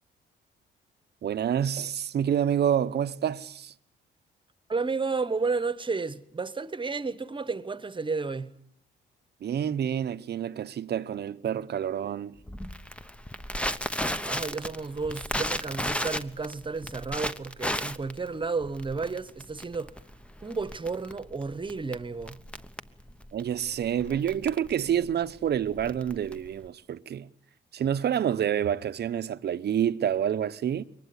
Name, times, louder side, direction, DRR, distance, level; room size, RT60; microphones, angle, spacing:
voice 1, 1.2-3.7 9.4-12.4 23.3-27.3 27.7-30.8, right 9 dB, 55° right, 0.9 m, -28 dB
voice 2, 4.7-8.5 14.2-19.9 20.4-22.4, right 4 dB, 25° right, 1.3 m, -32 dB
Crackle, 12.5-26.7, equal, 5° left, 1.0 m, -35 dB
22.5 x 19.5 x 9.6 m
cardioid pair, 90°, 20 cm